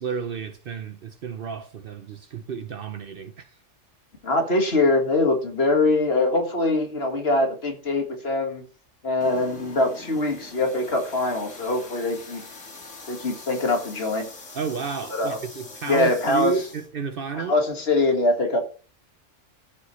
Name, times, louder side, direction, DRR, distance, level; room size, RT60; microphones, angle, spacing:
voice 1, 0.0-3.5 14.5-17.6, right 6 dB, 55° right, 0.8 m, -31 dB
voice 2, 4.2-8.6 9.0-12.4 13.1-14.3 15.1-15.4 15.9-16.5 17.4-18.6, left 2 dB, 55° left, 1.9 m, -23 dB
sound 1, 9.2-16.9, left 3 dB, 75° left, 2.1 m, -43 dB
13.5 x 5.6 x 3.1 m
omnidirectional pair, 1.3 m